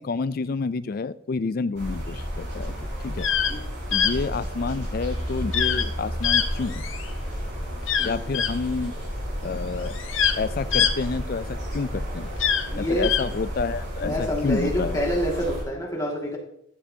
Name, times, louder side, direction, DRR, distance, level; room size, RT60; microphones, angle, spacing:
voice 1, 0.0-3.3 3.9-6.8 8.0-8.9 9.4-10.0 10.4-12.3 12.8-15.0, left 4 dB, 45° left, 16 dB, 0.3 m, -29 dB
sound 1, 1.7-15.6, equal, 55° right, 4.7 m, -32 dB
sound 2, 3.1-3.5 3.9-4.1 5.5-5.9 6.2-7.1 7.8-8.5 9.4-9.5 9.8-11.6 12.3-13.2, left 8 dB, 65° left, 0.8 m, -24 dB
voice 2, 8.0-8.3 12.7-13.1 14.0-16.4, equal, 15° left, -2 dB, 2.1 m, -27 dB
13.0 x 9.0 x 2.8 m, 0.71 s
head